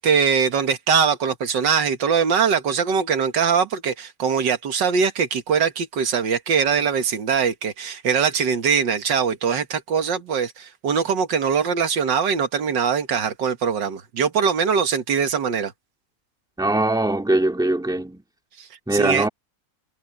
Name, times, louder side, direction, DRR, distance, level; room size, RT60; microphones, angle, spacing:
voice 1, 0.0-15.7 18.6-19.3, right 6 dB, 85° right, 2.1 m, -22 dB
voice 2, 16.6-18.2 18.9-19.3, right 2 dB, ahead, 2.1 m, -21 dB
omnidirectional pair, 1.9 m